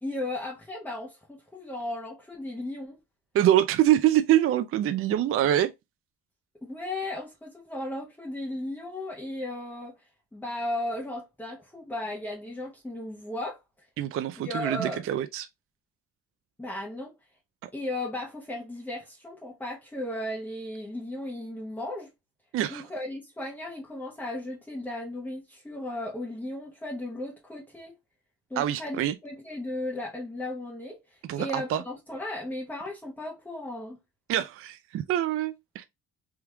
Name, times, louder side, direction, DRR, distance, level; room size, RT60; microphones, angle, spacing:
voice 1, 0.0-3.0 6.6-13.6 14.4-15.1 16.6-17.1 17.7-22.1 22.7-28.0 28.5-34.0, left 1 dB, 5° left, 0.8 m, -35 dB
voice 2, 3.3-5.7 14.0-15.5 17.6-17.7 22.5-22.8 28.6-29.1 31.3-31.8 34.3-35.8, right 12 dB, 50° right, 0.4 m, -25 dB
3.5 x 3.0 x 2.2 m
cardioid pair, 95°, 29 cm